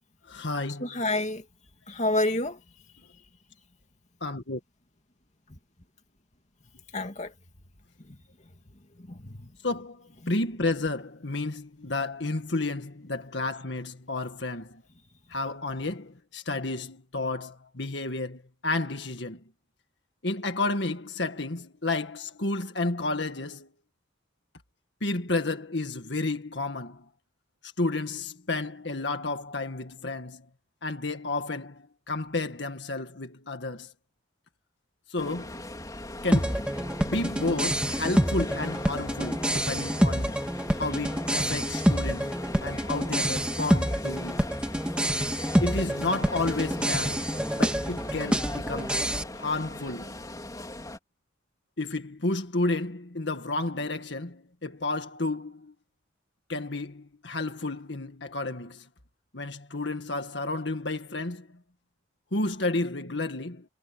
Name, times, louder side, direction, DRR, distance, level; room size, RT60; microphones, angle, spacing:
voice 1, 0.3-0.9 4.2-4.6 9.6-14.8 15.3-19.4 20.2-23.7 25.0-27.0 27.8-30.4 30.8-33.9 35.1-35.6 36.2-40.4 40.8-42.4 42.6-44.4 45.6-47.3 47.6-49.0 49.3-50.2 51.8-55.7 56.5-58.8 59.3-61.5 62.3-63.6, left 2 dB, 65° left, 1.9 m, -31 dB
voice 2, 0.8-1.4 1.9-2.6 6.9-7.3 9.0-9.5 10.2-10.3, left 2 dB, 35° left, 2.5 m, -29 dB
sound 1, 35.2-51.0, left 1 dB, 20° left, 3.9 m, -39 dB
sound 2, 36.3-49.2, equal, 5° right, 2.5 m, -27 dB
head